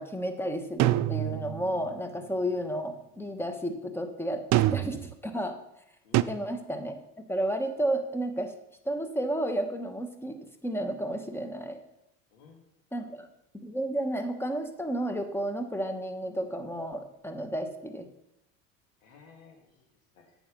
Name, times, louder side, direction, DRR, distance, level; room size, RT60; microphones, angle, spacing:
voice 1, 0.0-5.6 6.3-7.0 7.3-8.5 8.8-10.4 10.6-11.8 12.9-13.3 13.6-18.1, right 1 dB, 5° left, 7 dB, 1.2 m, -32 dB
sound 1, 0.8-1.8 4.5-5.1 6.1-6.2, right 16 dB, 45° right, 0.5 m, -25 dB
voice 2, 6.0-6.4 12.3-13.0 19.0-19.9 20.1-20.3, left 5 dB, 75° left, 2 dB, 2.5 m, -55 dB
8.5 x 6.3 x 5.4 m, 0.82 s
hypercardioid pair, 90°, 40 cm